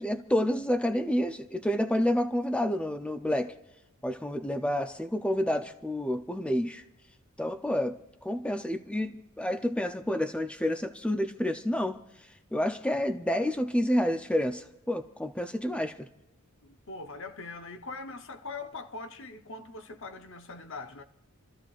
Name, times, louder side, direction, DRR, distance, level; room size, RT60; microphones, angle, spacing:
voice 1, 0.0-3.5 4.0-6.8 7.4-8.0 8.2-12.0 12.5-16.1, left 1 dB, 5° left, 0.5 m, -29 dB
voice 2, 16.6-21.0, left 3 dB, 60° left, 0.9 m, -42 dB
29.0 x 13.5 x 2.5 m
head